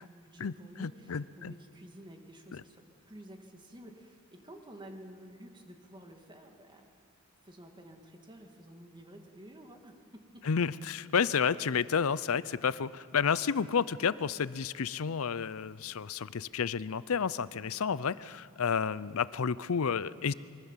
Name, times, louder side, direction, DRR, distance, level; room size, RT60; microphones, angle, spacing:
voice 1, 0.0-6.9 7.4-10.5, right 1 dB, 20° right, 4 dB, 2.2 m, -51 dB
voice 2, 0.8-1.5 2.5-2.6 10.5-20.3, left 6 dB, 65° left, 18 dB, 0.5 m, -31 dB
24.5 x 23.0 x 7.4 m, 2.3 s
head